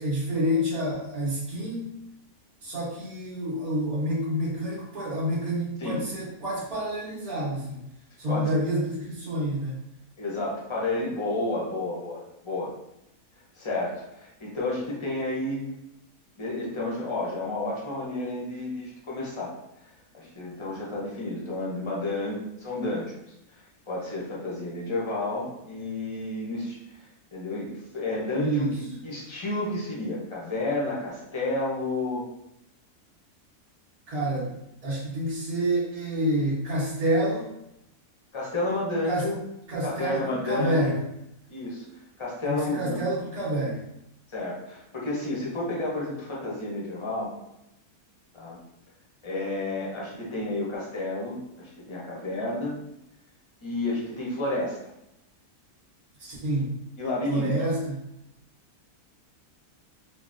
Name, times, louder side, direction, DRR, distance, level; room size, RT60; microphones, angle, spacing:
voice 1, 0.0-2.0 2.6-7.8 8.2-9.8 28.4-28.8 34.1-37.6 39.0-39.3 39.7-41.0 42.5-43.9 56.2-56.7 57.3-58.0, right 1 dB, 75° right, -13 dB, 1.6 m, -28 dB
voice 2, 10.2-12.7 13.5-15.7 16.4-19.6 19.8-23.1 23.5-23.6 23.9-26.8 27.3-32.2 38.3-39.4 39.8-41.0 41.5-41.8 42.2-43.0 44.3-47.3 48.3-48.6 49.2-52.8 53.6-54.8 57.0-57.5, left 2 dB, 40° left, -4 dB, 0.4 m, -31 dB
3.8 x 2.1 x 2.5 m, 0.85 s
omnidirectional pair, 1.6 m